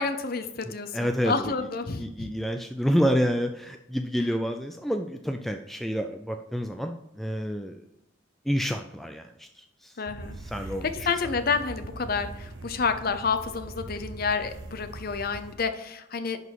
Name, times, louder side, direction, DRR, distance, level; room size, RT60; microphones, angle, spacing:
voice 1, 0.0-2.3 10.0-10.4 11.1-16.4, left 5 dB, 50° left, 9 dB, 0.7 m, -29 dB
voice 2, 0.6-1.7 2.0-7.8 8.5-9.9 10.4-11.3, equal, ahead, 5 dB, 0.3 m, -29 dB
sound 1, 10.0-15.6, right 2 dB, 70° right, 0.9 m, -41 dB
10.5 x 4.1 x 4.7 m, 0.83 s
head